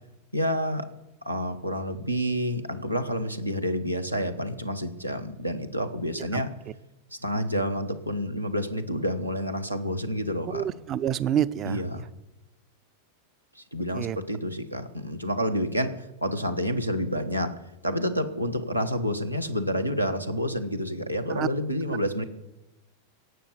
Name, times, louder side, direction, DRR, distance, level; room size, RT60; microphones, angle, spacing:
voice 1, 0.3-0.9 1.2-6.5 7.1-10.7 11.6-12.1 13.5-17.5 17.8-22.2, equal, 90° right, 6 dB, 1.1 m, -29 dB
voice 2, 10.4-11.8 13.9-14.2 21.3-21.5, right 10 dB, 30° right, 17 dB, 0.5 m, -27 dB
17.5 x 7.0 x 8.0 m, 0.97 s
figure-of-eight pair, 90°, 0 cm